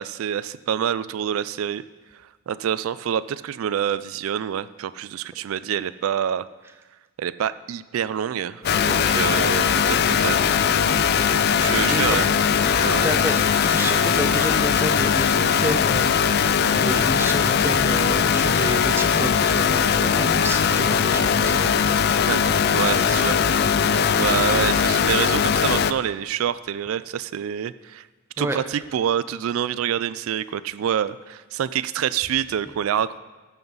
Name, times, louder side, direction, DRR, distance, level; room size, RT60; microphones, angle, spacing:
voice 1, 0.0-1.8 2.5-6.5 7.2-10.6 11.6-12.3 12.8-13.1 22.2-22.4 22.7-23.4 24.1-28.1 28.4-33.2, right 9 dB, 85° right, 16 dB, 0.3 m, -26 dB
sound 1, 8.6-25.0, left 1 dB, 65° left, 2.0 m, -31 dB
sound 2, 8.6-25.9, left 7 dB, 50° left, 0.3 m, -20 dB
voice 2, 11.9-12.3 13.0-16.1 16.7-21.6 28.4-28.6, right 1 dB, 10° right, 6 dB, 0.6 m, -29 dB
13.5 x 5.7 x 5.4 m, 1.3 s
head